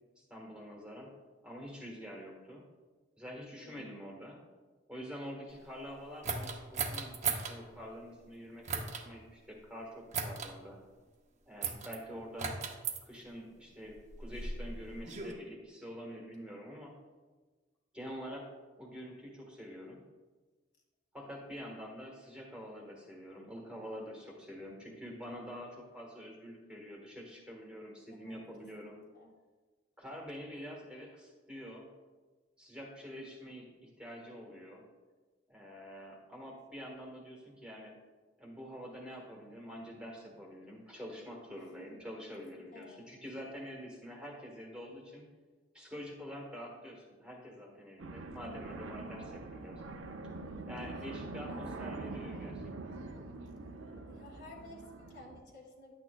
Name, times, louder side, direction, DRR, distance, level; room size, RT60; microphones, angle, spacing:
voice 1, 0.2-1.1 1.4-2.6 3.2-4.4 4.9-10.8 11.4-12.6 13.0-16.9 17.9-18.5 18.8-20.0 21.1-29.0 30.0-31.9 32.6-34.8 35.5-37.9 38.4-45.2 45.7-50.0 50.7-52.9, equal, 5° right, -3 dB, 1.3 m, -46 dB
voice 2, 3.6-4.2 28.3-29.3 41.5-42.0 42.7-43.1 51.4-52.1 53.9-55.9, left 1 dB, 55° left, -1 dB, 1.7 m, -55 dB
sound 1, 6.2-7.6 8.6-9.0 10.1-10.5 11.6-12.0 12.4-13.0 13.9-15.3, right 5 dB, 35° right, 0.7 m, -36 dB
sound 2, 48.0-55.4, right 3 dB, 85° right, 0.7 m, -44 dB
10.5 x 8.4 x 2.3 m, 1.3 s
head